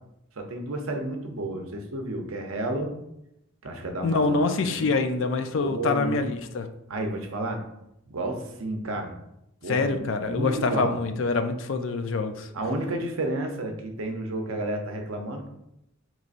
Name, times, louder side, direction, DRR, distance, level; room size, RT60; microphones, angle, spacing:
voice 1, 0.4-2.9 3.6-4.4 4.6-4.9 5.6-6.3 6.9-7.6 8.1-9.2 9.6-11.0 12.5-15.5, right 1 dB, 75° right, 4 dB, 0.7 m, -31 dB
voice 2, 4.0-6.7 9.7-12.5, left 3 dB, 60° left, 8 dB, 0.4 m, -25 dB
5.2 x 3.1 x 2.5 m, 0.83 s
head